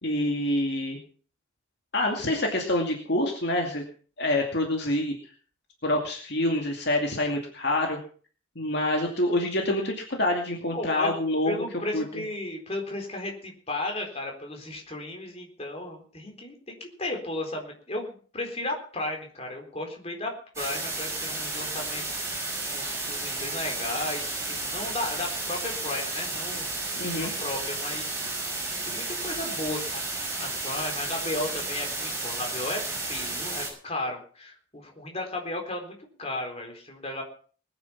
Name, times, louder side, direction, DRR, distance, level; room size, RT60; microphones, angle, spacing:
voice 1, 0.0-1.0 1.9-3.8 4.2-5.1 5.8-8.0 8.6-11.5 11.9-12.0 27.0-27.3, left 1 dB, 55° left, 1 dB, 2.4 m, -26 dB
voice 2, 10.7-11.1 11.5-22.2 22.7-26.7 27.0-28.3 28.9-30.1 30.4-32.8 33.1-37.2, left 2 dB, 30° left, 2 dB, 4.0 m, -34 dB
sound 1, 20.6-33.7, right 2 dB, 15° right, 6.6 m, -32 dB
20.5 x 9.7 x 5.8 m, 0.43 s
head